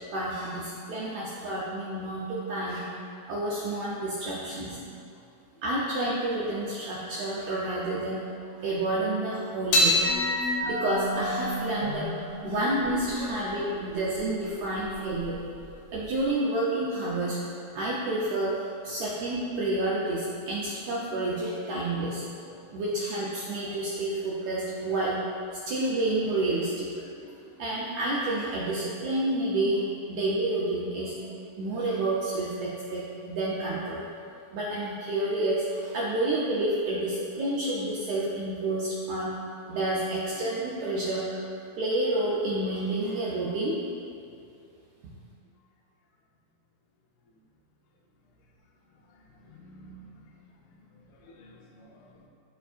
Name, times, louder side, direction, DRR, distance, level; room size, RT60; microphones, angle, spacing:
voice 1, 0.1-2.9 3.3-4.8 5.6-8.2 8.6-10.0 10.4-12.1 12.4-15.4 15.9-22.2 22.7-25.2 25.7-26.9 27.6-29.8 30.1-31.1 31.6-34.0 34.5-39.3 39.7-41.4 41.8-43.8, right 2 dB, 75° right, -6 dB, 1.7 m, -29 dB
sound 1, 9.7-16.3, left 1 dB, 75° left, 2.6 m, -29 dB
voice 2, 40.5-40.9 49.3-50.1 50.6-50.7 51.2-52.2, right 1 dB, 90° left, -1 dB, 2.8 m, -50 dB
13.0 x 4.5 x 2.5 m, 2.4 s
omnidirectional pair, 4.2 m